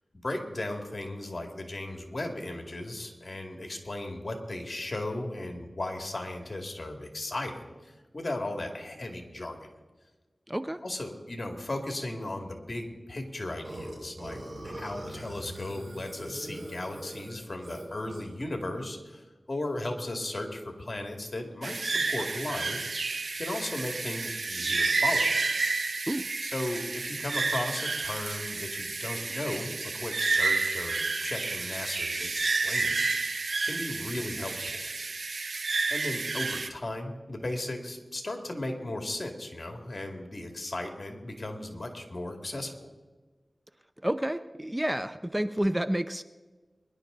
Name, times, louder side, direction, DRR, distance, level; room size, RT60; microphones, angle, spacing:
voice 1, 0.2-9.7 10.8-23.1 23.4-25.4 26.4-34.9 35.9-42.9, left 1 dB, 50° left, 3 dB, 2.4 m, -36 dB
voice 2, 10.5-10.8 26.1-26.3 44.0-46.2, right 1 dB, 15° right, 12 dB, 0.5 m, -29 dB
Burping eructation, 13.6-18.4, right 1 dB, 65° right, 5.6 m, -41 dB
sound 1, 21.6-36.7, right 3 dB, 80° right, 0.8 m, -30 dB
23.0 x 11.0 x 4.0 m, 1.3 s
wide cardioid pair, 55°, 0 cm